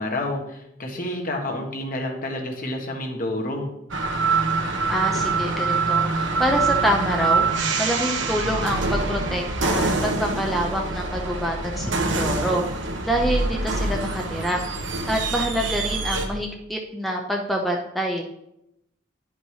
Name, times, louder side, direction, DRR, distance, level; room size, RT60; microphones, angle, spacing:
voice 1, 0.0-3.7, left 1 dB, 45° left, 1 dB, 1.5 m, -29 dB
sound 1, 3.9-16.3, right 3 dB, 80° right, 1.3 m, -25 dB
voice 2, 4.9-7.5 7.8-12.6 13.0-14.6 15.1-18.2, equal, ahead, 0 dB, 0.7 m, -26 dB
10.5 x 5.3 x 4.9 m, 0.84 s
head